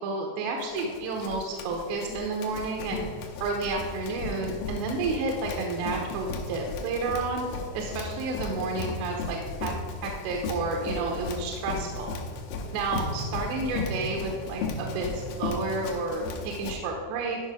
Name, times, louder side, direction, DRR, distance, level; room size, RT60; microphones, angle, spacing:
voice 1, 0.0-3.0 3.4-7.4 7.7-9.7 10.0-12.1 12.7-17.4, right 3 dB, 85° right, 1 dB, 3.0 m, -31 dB
Run, 0.6-16.8, left 3 dB, 75° left, 2.1 m, -35 dB
12.5 x 5.4 x 4.9 m, 2.2 s
omnidirectional pair, 5.0 m